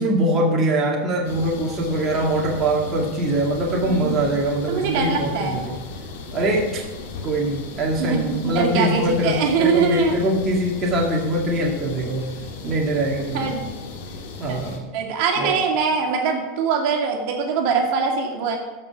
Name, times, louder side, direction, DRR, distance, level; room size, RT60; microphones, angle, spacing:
voice 1, 0.0-5.7 6.3-6.8 7.2-12.2 12.6-13.5 14.4-14.8 15.4-15.6, right 1 dB, 25° right, -2 dB, 2.1 m, -22 dB
sound 1, 1.2-14.8, left 3 dB, 80° left, 2.2 m, -36 dB
voice 2, 3.9-4.3 4.7-5.6 8.0-10.1 13.3-13.7 14.5-14.6 14.9-18.6, right 5 dB, 60° right, 1 dB, 2.3 m, -23 dB
14.0 x 5.5 x 5.9 m, 1.3 s
supercardioid pair, 140°, 0 cm